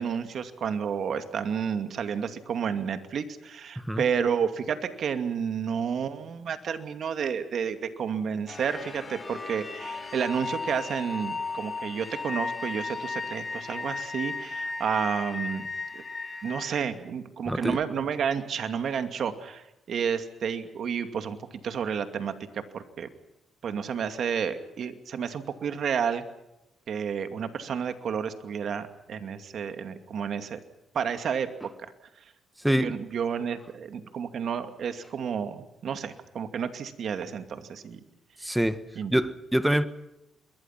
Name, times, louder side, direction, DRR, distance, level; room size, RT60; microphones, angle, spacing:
voice 1, 0.0-15.7 15.9-16.0 16.4-21.4 21.6-23.1 23.6-26.2 26.9-30.6 30.9-31.5 32.8-38.0 39.0-39.1, right 7 dB, 60° right, 8 dB, 2.4 m, -31 dB
sound 1, 8.5-16.8, left 4 dB, 30° left, 3.3 m, -35 dB
voice 2, 17.5-17.8 32.6-33.0 38.4-38.8 39.1-39.9, right 1 dB, 5° right, 12 dB, 1.4 m, -25 dB
27.5 x 22.5 x 5.9 m, 0.93 s
cardioid pair, 90°, 0 cm